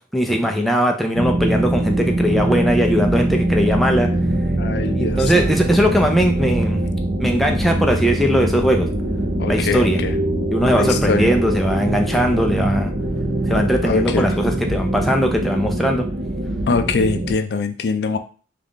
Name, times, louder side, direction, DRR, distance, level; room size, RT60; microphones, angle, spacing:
voice 1, 0.1-4.1 4.9-6.8 7.2-8.9 9.5-10.0 10.5-12.9 13.5-16.1, equal, ahead, 2 dB, 0.4 m, -19 dB
sound 1, 1.1-17.3, right 1 dB, 55° right, 0.6 m, -22 dB
voice 2, 4.6-5.5 9.4-10.1 10.8-11.3 13.5-14.3 16.7-18.2, left 4 dB, 65° left, 8 dB, 0.4 m, -23 dB
3.7 x 2.4 x 3.6 m, 0.38 s
head